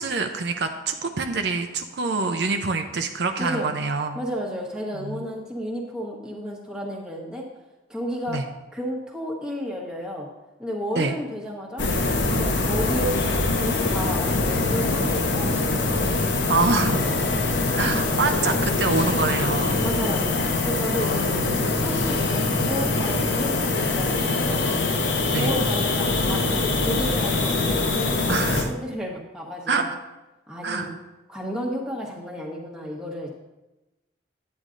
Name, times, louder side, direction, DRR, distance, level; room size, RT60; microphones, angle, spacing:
voice 1, 0.0-4.2 4.9-5.3 8.3-8.5 11.0-11.1 16.5-17.1 17.7-19.8 21.0-21.7 25.3-25.5 28.3-28.7 29.7-29.8 30.6-30.9, right 4 dB, 65° right, 5 dB, 0.6 m, -26 dB
voice 2, 3.4-3.7 4.1-7.4 7.9-8.4 8.7-10.3 10.6-11.9 12.3-13.2 13.6-15.9 19.8-20.3 20.6-21.5 21.8-24.7 25.4-29.9 30.5-30.9 31.3-33.3, equal, 5° right, -2 dB, 1.1 m, -32 dB
sound 1, 11.8-28.6, left 3 dB, 75° left, 0.9 m, -23 dB
9.5 x 9.0 x 2.5 m, 1.0 s
head